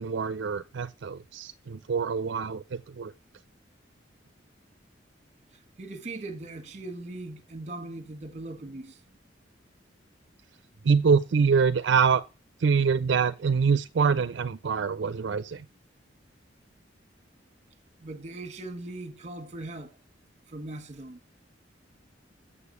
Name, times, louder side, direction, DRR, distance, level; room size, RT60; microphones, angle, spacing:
voice 1, 0.0-3.1 10.8-12.2 12.6-15.6, right 5 dB, 70° right, 0.4 m, -25 dB
voice 2, 5.5-9.0 10.8-10.9 18.0-20.0 20.5-21.2, right 2 dB, 40° right, 1.3 m, -40 dB
6.9 x 6.7 x 6.9 m
head